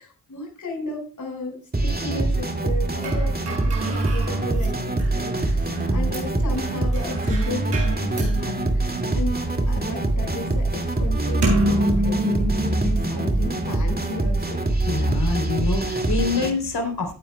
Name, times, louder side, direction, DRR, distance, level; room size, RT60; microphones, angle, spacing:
voice 1, 0.0-9.4 9.7-14.6, left 2 dB, 50° left, 2 dB, 5.2 m, -34 dB
sound 1, 1.7-16.5, right 2 dB, 25° right, 2.3 m, -24 dB
sound 2, 3.0-13.9, right 1 dB, 75° right, 6.6 m, -29 dB
voice 2, 5.7-6.1 14.8-17.1, left 4 dB, 70° left, 4 dB, 3.3 m, -26 dB
17.0 x 9.3 x 2.2 m, 0.36 s
supercardioid pair, 45°, 40 cm